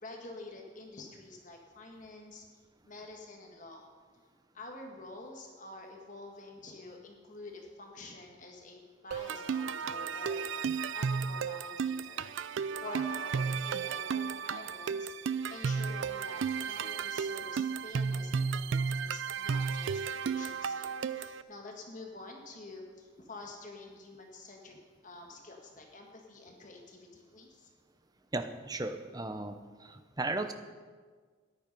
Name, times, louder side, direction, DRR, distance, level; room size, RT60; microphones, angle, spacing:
voice 1, 0.0-2.4 2.8-3.8 4.5-12.3 12.7-24.8 25.0-27.7, left 2 dB, 40° left, 1 dB, 1.4 m, -48 dB
sound 1, 9.1-21.4, right 6 dB, 70° right, 0.4 m, -33 dB
voice 2, 28.3-29.6 29.8-30.5, right 2 dB, 20° right, 8 dB, 0.7 m, -35 dB
13.5 x 10.0 x 5.3 m, 1.5 s
head